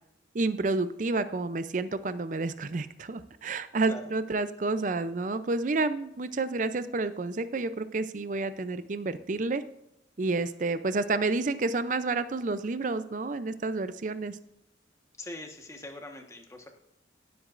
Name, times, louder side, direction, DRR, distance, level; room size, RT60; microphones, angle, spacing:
voice 1, 0.3-9.6 10.2-14.4, right 3 dB, 45° right, 13 dB, 0.5 m, -30 dB
voice 2, 15.2-16.7, left 1 dB, 15° left, 3 dB, 1.3 m, -42 dB
16.5 x 7.9 x 2.5 m, 0.83 s
head